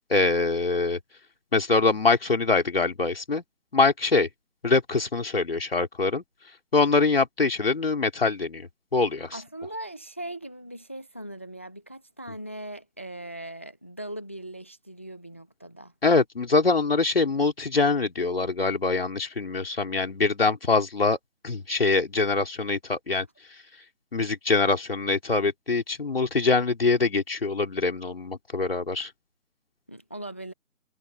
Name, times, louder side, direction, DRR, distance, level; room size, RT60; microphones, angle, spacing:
voice 1, 0.1-1.0 1.5-3.4 3.7-4.3 4.6-6.2 6.7-9.4 16.0-21.2 21.4-23.3 24.1-29.1, left 3 dB, 40° left, 3.5 m, -24 dB
voice 2, 9.3-15.9 29.9-30.5, right 1 dB, 10° left, 1.1 m, -39 dB
figure-of-eight pair, 165°, 42 cm